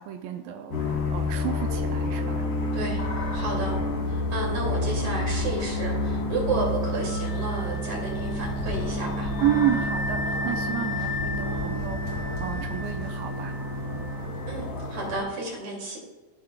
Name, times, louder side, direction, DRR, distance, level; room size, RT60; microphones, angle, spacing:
voice 1, 0.0-2.4 9.4-13.6, right 11 dB, 85° right, 5 dB, 2.0 m, -30 dB
sound 1, 0.7-15.2, left 1 dB, 35° left, 1.8 m, -29 dB
voice 2, 3.3-3.7 4.1-9.3 14.5-16.0, right 2 dB, 40° right, -3 dB, 3.1 m, -31 dB
Wind instrument woodwind instrument, 7.1-14.5, left 3 dB, 75° left, 2.2 m, -37 dB
15.0 x 5.9 x 2.4 m, 1.3 s
omnidirectional pair, 4.6 m